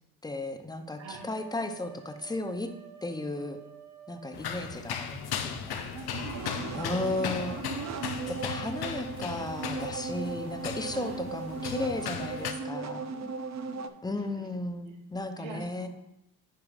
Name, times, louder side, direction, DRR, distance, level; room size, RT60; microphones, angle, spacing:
voice 1, 0.2-2.7 3.0-3.6 4.1-5.8 6.7-8.0 8.3-13.1 14.0-15.9, left 2 dB, 10° left, 7 dB, 0.5 m, -35 dB
sound 1, 0.9-6.7, right 9 dB, 55° right, 1.2 m, -52 dB
sound 2, 4.3-12.5, left 8 dB, 55° left, 0.7 m, -37 dB
voice 2, 5.7-6.7 7.3-8.0 8.9-9.1 10.8-11.2 13.1-13.9 14.2-14.5 14.8-15.0 15.4-15.9, right 4 dB, 80° right, 2 dB, 1.3 m, -46 dB
sound 3, 6.1-13.9, right 4 dB, 40° right, 0.5 m, -37 dB
10.0 x 4.6 x 2.5 m, 0.87 s
supercardioid pair, 65°, 46 cm